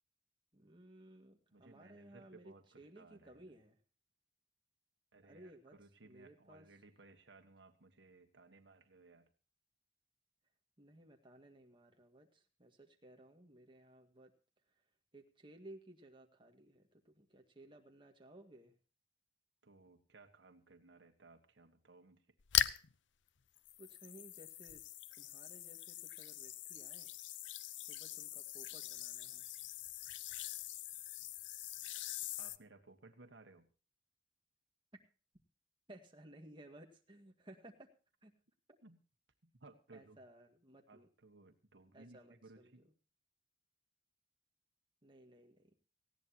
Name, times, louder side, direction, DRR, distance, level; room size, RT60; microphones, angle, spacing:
voice 1, 0.5-3.8 5.2-5.8 6.0-6.7 10.8-14.3 15.1-18.7 23.8-24.8 25.2-27.1 27.9-29.5 35.9-37.9 38.2-38.3 39.9-41.1 41.9-42.7 45.0-45.8, right 1 dB, 25° right, 2 dB, 1.9 m, -58 dB
voice 2, 1.5-3.5 5.1-9.3 19.6-22.3 32.4-33.7 38.8-39.0 39.4-40.2 40.9-42.8, right 3 dB, 75° right, 6 dB, 1.5 m, -61 dB
sound 1, 22.4-22.9 23.6-32.6, left 12 dB, 90° left, 0.7 m, -41 dB
19.0 x 16.0 x 2.9 m, 0.36 s
head